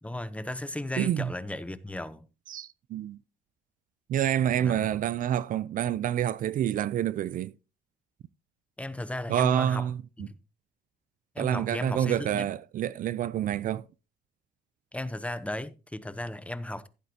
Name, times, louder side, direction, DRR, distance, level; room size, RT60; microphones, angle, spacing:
voice 1, 0.0-2.3 4.6-4.9 8.8-9.9 10.2-10.4 11.3-12.5 14.9-16.9, left 1 dB, 5° left, 0.8 m, -35 dB
voice 2, 1.0-1.3 2.5-3.2 4.1-7.5 9.3-10.3 11.4-13.9, right 10 dB, 55° right, 0.5 m, -28 dB
15.5 x 8.2 x 2.8 m
cardioid pair, 110°, 17 cm